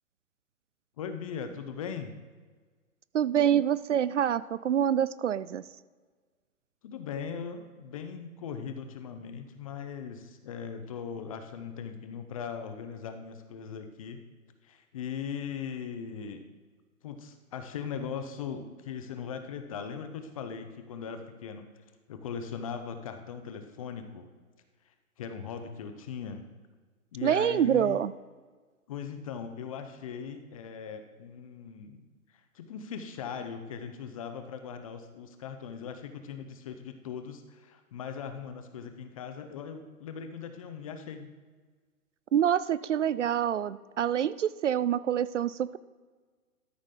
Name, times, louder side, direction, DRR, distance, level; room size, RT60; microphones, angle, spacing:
voice 1, 1.0-2.1 6.8-14.2 14.6-16.4 17.0-21.7 22.1-24.3 24.9-26.5 27.1-28.0 28.9-32.0 32.3-41.3, left 7 dB, 25° left, 8 dB, 0.6 m, -39 dB
voice 2, 3.1-5.6 27.2-28.1 42.3-45.8, right 9 dB, 55° right, 16 dB, 0.5 m, -26 dB
13.0 x 6.1 x 3.7 m, 1.4 s
figure-of-eight pair, 130°, 44 cm